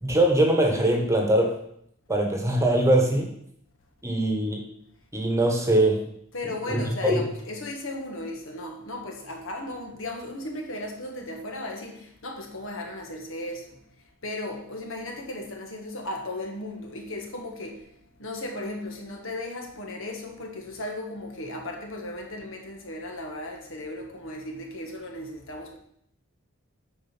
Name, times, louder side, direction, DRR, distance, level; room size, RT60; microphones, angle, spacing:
voice 1, 0.0-1.5 2.1-3.3 4.0-4.6 5.1-6.0 6.7-7.2, right 1 dB, 15° right, 1.3 m, -22 dB
voice 2, 6.3-13.8 14.2-17.9 18.2-25.8, left 1 dB, 65° left, 1.7 m, -36 dB
8.9 x 5.0 x 6.0 m
head